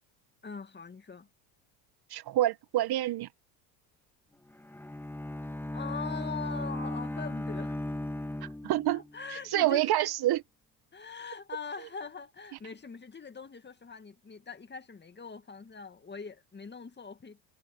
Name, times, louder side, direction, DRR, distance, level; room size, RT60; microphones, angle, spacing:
voice 1, 0.4-1.3 5.7-7.8 8.9-9.9 10.9-17.4, left 5 dB, 20° left, 2.4 m, -42 dB
voice 2, 2.1-3.3 8.4-9.0 9.5-10.4, right 14 dB, 50° right, 1.6 m, -27 dB
Bowed string instrument, 4.5-9.2, left 1 dB, 5° left, 2.2 m, -36 dB
hypercardioid pair, 90°, 50 cm